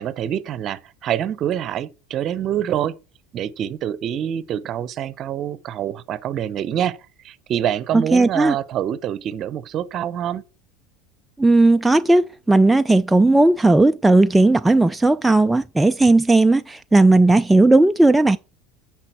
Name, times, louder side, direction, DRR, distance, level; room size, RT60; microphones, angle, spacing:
voice 1, 0.0-3.0 3.3-7.0 7.2-10.4, right 10 dB, 40° right, 0.8 m, -26 dB
voice 2, 7.9-8.6 11.4-18.4, right 2 dB, 10° right, 0.4 m, -15 dB
9.8 x 6.1 x 4.6 m
figure-of-eight pair, 75°, 0 cm